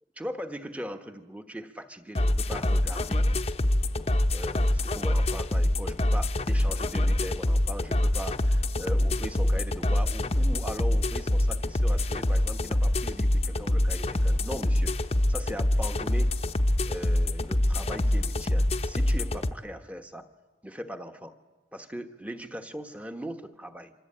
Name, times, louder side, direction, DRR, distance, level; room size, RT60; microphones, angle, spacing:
voice 1, 0.2-3.3 4.3-16.3 16.8-20.3 20.6-21.3 21.7-23.9, equal, 10° right, 7 dB, 1.1 m, -39 dB
sound 1, 2.1-19.5, left 1 dB, 35° left, 0.8 m, -25 dB
26.5 x 25.5 x 8.7 m, 1.3 s
head